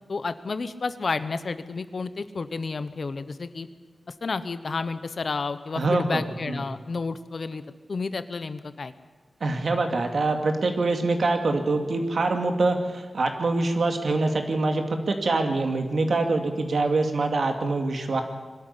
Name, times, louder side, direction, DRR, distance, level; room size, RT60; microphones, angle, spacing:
voice 1, 0.1-3.7 4.1-7.6 7.9-8.9, left 4 dB, 60° left, 12 dB, 1.1 m, -31 dB
voice 2, 5.8-6.6 9.4-18.2, right 3 dB, 65° right, 5 dB, 2.5 m, -25 dB
22.0 x 13.0 x 10.0 m, 1.5 s
wide cardioid pair, 95°, 0 cm